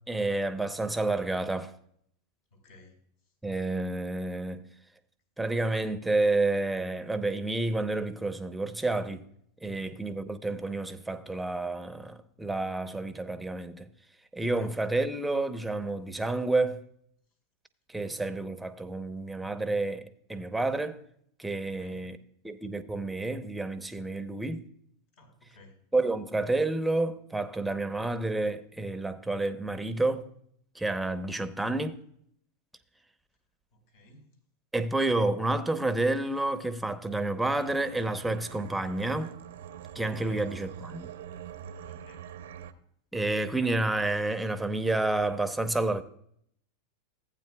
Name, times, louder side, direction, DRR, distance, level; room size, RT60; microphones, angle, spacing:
voice 1, 0.1-1.8 3.4-4.7 5.4-9.2 9.6-13.9 14.3-16.8 17.9-21.0 21.4-22.2 22.4-24.7 25.9-30.3 30.7-32.0 34.7-39.3 39.9-41.1 43.1-46.0, right 2 dB, 5° right, 0.8 m, -29 dB
voice 2, 2.5-3.0 9.7-10.0 14.6-14.7 17.9-18.2 19.3-19.5 21.6-22.0 25.2-25.8 33.7-34.3 40.3-40.5 41.9-42.3, equal, 70° left, 4.1 m, -55 dB
sound 1, 37.5-42.7, right 8 dB, 80° right, 0.8 m, -44 dB
15.5 x 8.9 x 2.3 m
hypercardioid pair, 115°, 0 cm